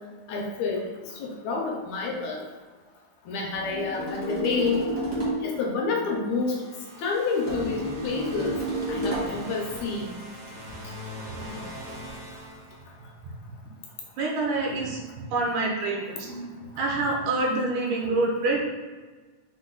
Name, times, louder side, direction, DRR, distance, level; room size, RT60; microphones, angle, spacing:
voice 1, 0.3-2.4 3.3-4.9 5.4-6.6 7.0-8.6 8.9-10.2, left 4 dB, 80° left, 0 dB, 1.8 m, -29 dB
sound 1, 3.5-5.6 7.5-9.5, right 1 dB, 35° right, 0.6 m, -30 dB
sound 2, 6.4-13.3, equal, 60° right, 1.0 m, -41 dB
voice 2, 14.2-15.0 15.3-18.6, right 2 dB, 80° right, -2 dB, 2.4 m, -26 dB
5.8 x 2.3 x 3.8 m, 1.4 s
omnidirectional pair, 3.5 m